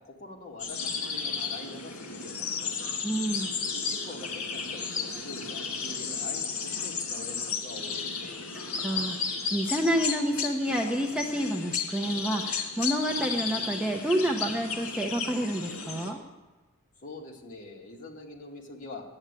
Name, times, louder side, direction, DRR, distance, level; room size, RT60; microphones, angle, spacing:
voice 1, 0.0-2.9 3.7-8.4 17.0-19.2, left 2 dB, 35° left, -2 dB, 2.1 m, -44 dB
sound 1, 0.6-16.1, left 5 dB, 70° left, 2.3 m, -33 dB
voice 2, 3.0-3.5 8.5-16.2, equal, 5° right, 1 dB, 0.8 m, -29 dB
11.0 x 8.8 x 8.1 m, 1.2 s
head